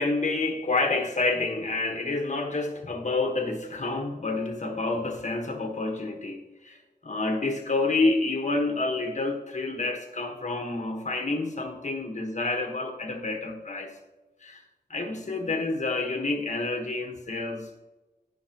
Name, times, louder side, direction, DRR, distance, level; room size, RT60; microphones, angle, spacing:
voice 1, 0.0-13.9 14.4-14.6 14.9-17.8, left 3 dB, 45° left, 3 dB, 1.4 m, -28 dB
16.0 x 5.7 x 3.0 m, 1.1 s
wide cardioid pair, 80°, 16 cm